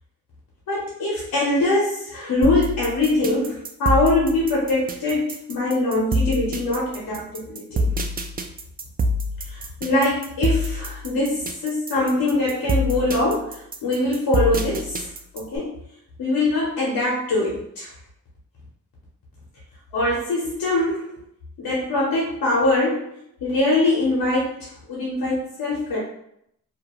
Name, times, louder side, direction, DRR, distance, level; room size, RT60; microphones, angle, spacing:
voice 1, 0.7-7.9 9.5-15.1 15.3-15.7 16.2-17.9 19.9-21.2 21.6-23.1 23.4-26.0, left 2 dB, 85° left, -5 dB, 0.8 m, -23 dB
sound 1, 2.4-15.6, equal, 25° right, 0.4 m, -26 dB
2.4 x 2.2 x 2.9 m, 0.74 s
supercardioid pair, 45°, 35 cm